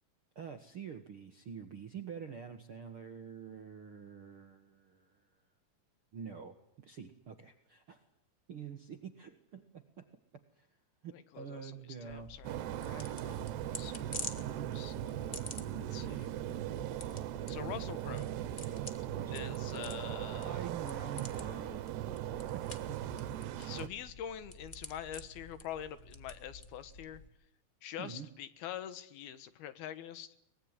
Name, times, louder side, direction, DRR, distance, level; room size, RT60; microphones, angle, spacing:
voice 1, 0.3-5.2 6.1-8.0 8.5-10.1 10.6-10.7 11.0-12.3 14.3-14.7 15.6-15.8 19.1-19.9 20.4-21.8 22.3-23.0 28.0-28.3, right 7 dB, 55° right, 7 dB, 1.5 m, -47 dB
voice 2, 11.1-13.4 13.8-16.3 17.5-18.3 19.3-20.6 23.6-27.2 27.8-30.3, left 10 dB, 70° left, 13 dB, 3.1 m, -45 dB
sound 1, 12.1-27.3, left 2 dB, 50° left, 0.6 m, -49 dB
sound 2, 12.4-23.9, right 13 dB, 85° right, 3.3 m, -39 dB
24.0 x 21.0 x 9.8 m, 0.74 s
omnidirectional pair, 4.7 m